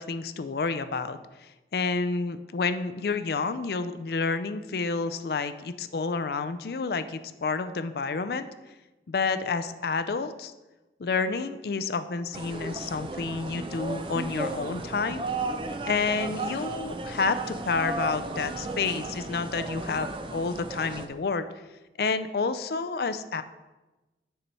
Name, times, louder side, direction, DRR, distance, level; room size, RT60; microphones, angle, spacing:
voice 1, 0.0-8.5 9.1-10.5 11.0-15.2 15.9-21.5 22.0-23.4, left 4 dB, 60° left, 11 dB, 0.4 m, -29 dB
sound 1, 12.3-21.1, right 2 dB, 30° right, 0.4 m, -35 dB
6.9 x 5.4 x 4.4 m, 1.1 s
head